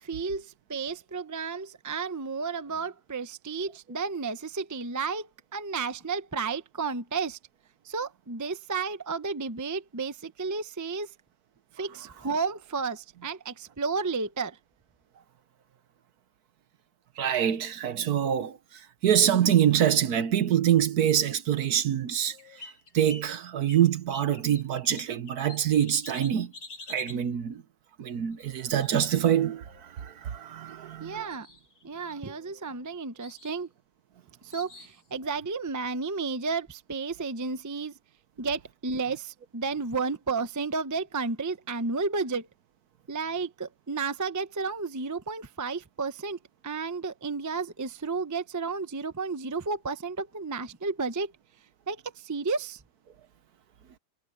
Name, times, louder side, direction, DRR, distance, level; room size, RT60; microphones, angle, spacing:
voice 1, 0.0-7.4 7.8-11.1 11.7-14.6 31.0-31.5 31.8-33.7 34.4-37.9 38.4-42.5 43.1-51.3 51.9-52.8, right 4 dB, 25° right, 0.4 m, -32 dB
voice 2, 17.2-18.6 19.0-22.4 22.9-26.5 26.9-27.6 28.0-31.2, right 10 dB, 60° right, 1.3 m, -25 dB
sound 1, 22.2-23.3 23.7-27.2 28.3-29.8 30.7-31.0 31.2-31.8 32.1-32.8 33.2-33.6 34.5-35.0, left 3 dB, 55° left, 4.4 m, -47 dB
omnidirectional pair, 2.1 m